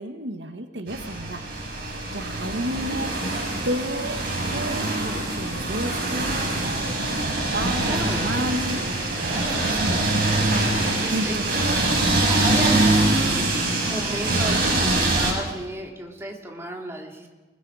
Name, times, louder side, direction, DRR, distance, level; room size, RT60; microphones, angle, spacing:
voice 1, 0.0-1.7 2.1-3.1 3.5-4.2 4.4-8.8 9.4-10.3 11.1-12.0, right 1 dB, 80° right, 6 dB, 1.6 m, -32 dB
sound 1, 0.9-15.3, right 2 dB, 55° right, 6.9 m, -24 dB
voice 2, 7.8-8.3 9.2-10.0 11.0-11.4 12.3-17.3, right 1 dB, 15° right, 0 dB, 3.1 m, -33 dB
29.0 x 20.5 x 5.0 m, 1.2 s
head